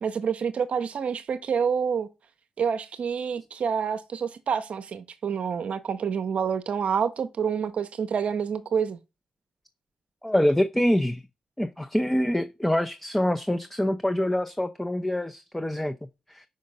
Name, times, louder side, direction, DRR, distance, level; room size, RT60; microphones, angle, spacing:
voice 1, 0.0-2.1 2.6-9.0, right 7 dB, 65° right, 0.6 m, -28 dB
voice 2, 10.2-11.2 11.6-15.9 16.3-16.4, left 1 dB, 10° left, 0.5 m, -25 dB
5.2 x 3.7 x 5.4 m
supercardioid pair, 55°, 2 cm